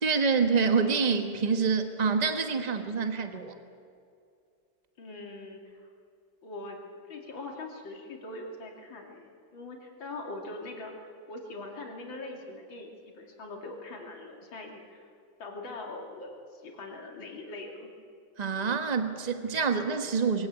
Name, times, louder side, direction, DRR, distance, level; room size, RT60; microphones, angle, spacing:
voice 1, 0.0-3.5 18.4-20.5, right 5 dB, 25° right, 7 dB, 1.2 m, -26 dB
voice 2, 5.0-5.8 6.4-15.1 15.4-17.9, left 2 dB, 65° left, 1 dB, 3.4 m, -42 dB
22.0 x 17.5 x 8.3 m, 2.4 s
omnidirectional pair, 2.3 m